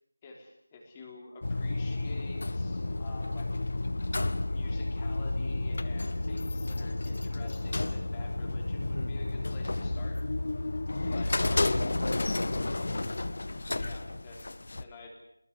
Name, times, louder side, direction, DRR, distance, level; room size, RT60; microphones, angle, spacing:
voice 1, 0.2-3.6 4.4-10.2 11.1-11.9 13.7-14.5 14.8-15.2, left 3 dB, 15° left, 0 dB, 3.5 m, -48 dB
sound 1, 1.4-14.8, left 2 dB, 55° left, 1.4 m, -31 dB
voice 2, 8.8-9.1 11.4-13.1, left 1 dB, 80° left, 12 dB, 2.2 m, -38 dB
26.0 x 21.0 x 8.2 m, 0.77 s
figure-of-eight pair, 175°, 0 cm